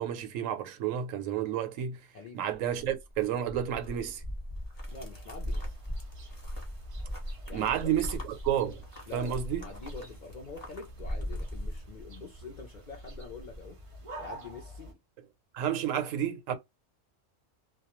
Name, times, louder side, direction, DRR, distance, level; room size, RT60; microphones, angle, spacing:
voice 1, 0.0-2.0 2.3-4.2 7.5-8.8 9.1-9.6 15.5-16.5, right 10 dB, 85° right, 1.0 m, -31 dB
sound 1, 2.5-12.4 12.7-13.7, equal, 20° left, 0.7 m, -39 dB
voice 2, 4.9-5.8 7.5-8.0 9.1-15.0, left 4 dB, 60° left, 0.5 m, -46 dB
sound 2, 4.9-14.9, right 1 dB, 55° right, 0.3 m, -48 dB
2.2 x 2.2 x 2.9 m
omnidirectional pair, 1.3 m